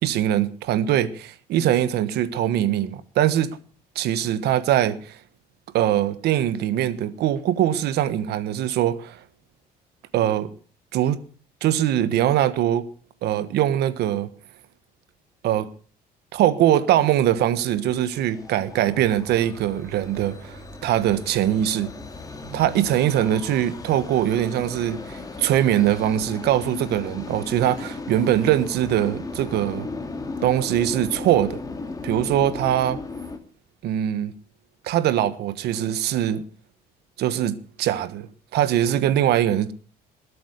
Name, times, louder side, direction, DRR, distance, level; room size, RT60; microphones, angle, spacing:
voice 1, 0.0-3.6 3.9-5.2 5.7-9.2 10.1-10.5 10.9-11.2 11.6-12.8 13.2-14.3 15.4-15.7 16.3-21.9 22.5-29.9 30.4-31.6 32.0-33.0 33.8-34.4 34.8-36.5 37.2-39.7, right 11 dB, 75° right, 1.3 m, -22 dB
sound 1, 17.3-33.4, left 3 dB, 20° left, 2.6 m, -36 dB
21.0 x 8.6 x 6.6 m
cardioid pair, 110°, 17 cm